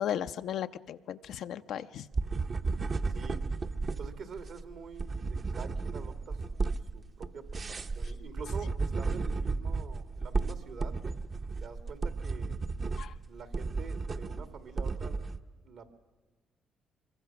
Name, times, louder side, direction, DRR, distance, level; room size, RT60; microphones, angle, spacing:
voice 1, 0.0-2.0 13.0-13.1, left 10 dB, 75° left, 10 dB, 0.6 m, -35 dB
sound 1, 2.1-15.4, right 3 dB, 45° right, 0.9 m, -33 dB
voice 2, 3.1-3.4 4.0-11.0 11.6-12.6 13.0-15.2 15.6-15.9, right 5 dB, 70° right, 8 dB, 2.2 m, -47 dB
24.5 x 22.5 x 5.9 m, 1.3 s
supercardioid pair, 65°, 0 cm